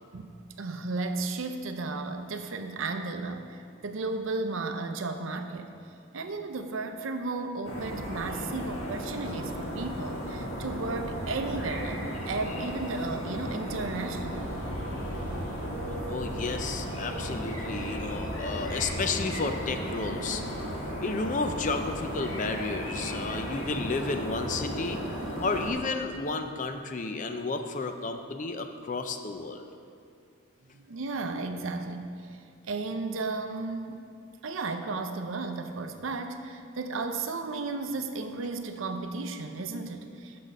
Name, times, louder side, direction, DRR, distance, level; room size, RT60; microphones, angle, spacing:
voice 1, 0.1-5.8 6.1-14.6 30.7-34.1 34.4-40.4, right 3 dB, 70° right, 7 dB, 0.6 m, -34 dB
sound 1, 7.6-25.7, equal, 75° left, 1.6 m, -35 dB
voice 2, 16.1-20.4 21.0-25.0 25.4-29.7, left 3 dB, 35° left, 6 dB, 0.4 m, -32 dB
6.6 x 6.2 x 5.3 m, 2.4 s
head